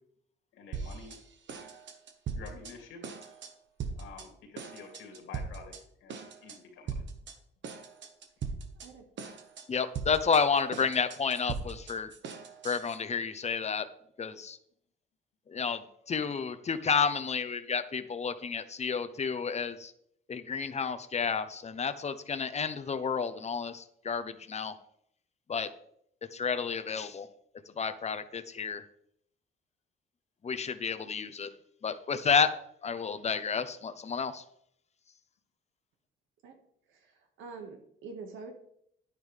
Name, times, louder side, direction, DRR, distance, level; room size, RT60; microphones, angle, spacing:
voice 1, 0.6-1.2 2.3-3.0 4.0-5.7 6.0-6.9, left 5 dB, 85° left, 2 dB, 3.0 m, -48 dB
sound 1, 0.7-1.2 1.5-2.7 3.0-3.5 3.8-4.3 4.6-5.8 6.1-6.6 6.9-7.3 7.6-8.9 9.2-9.6 9.9-13.0, right 5 dB, 65° right, 1.5 m, -39 dB
voice 2, 9.7-12.1 12.6-13.8 14.2-14.6 15.5-19.9 20.3-24.7 25.5-25.7 26.3-27.3 27.8-28.8 30.4-31.5 31.8-32.5 32.8-34.4, left 6 dB, 35° left, 11 dB, 0.9 m, -31 dB
voice 3, 36.9-38.5, right 4 dB, 85° right, 4 dB, 1.9 m, -45 dB
10.0 x 9.9 x 3.5 m, 0.70 s
cardioid pair, 90°, 20 cm